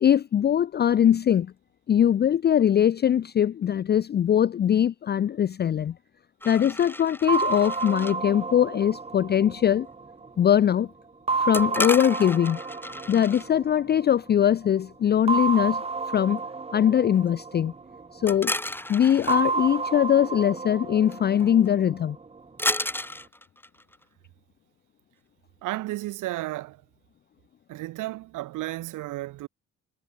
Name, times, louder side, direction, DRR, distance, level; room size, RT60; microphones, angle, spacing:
voice 1, 0.0-1.5 1.9-5.9 6.4-9.9 10.4-10.9 11.4-12.6 13.1-16.4 16.7-17.7 18.1-18.6 18.9-22.2, left 9 dB, 35° left, 0.4 m, -22 dB
sound 1, 6.4-8.2 11.5-13.5 18.3-19.4 21.1-21.2 21.4-21.7 22.6-24.0, left 1 dB, 5° left, 2.7 m, -32 dB
sound 2, 7.3-10.6 11.3-14.2 15.3-18.4 19.3-22.4, right 4 dB, 20° right, 0.9 m, -31 dB
voice 2, 25.6-26.8 27.7-29.5, right 17 dB, 90° right, 1.4 m, -33 dB
cardioid pair, 90°, 30 cm